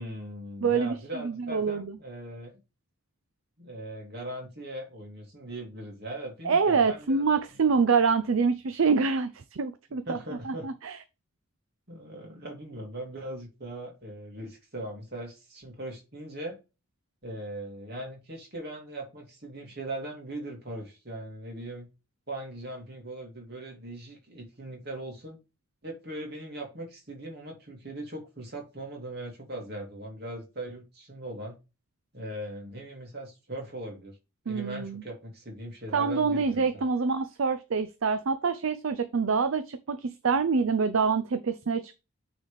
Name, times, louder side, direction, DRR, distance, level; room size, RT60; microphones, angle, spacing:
voice 1, 0.0-2.5 3.6-7.2 10.1-10.7 11.9-16.6 17.2-21.9 22.3-25.4 25.8-31.6 32.1-34.2 34.5-36.8, right 1 dB, 50° right, 2.7 m, -39 dB
voice 2, 0.6-1.8 6.4-10.2 10.4-11.0 34.5-35.0 35.9-42.0, right 5 dB, 75° right, 0.5 m, -26 dB
9.1 x 4.1 x 3.4 m
head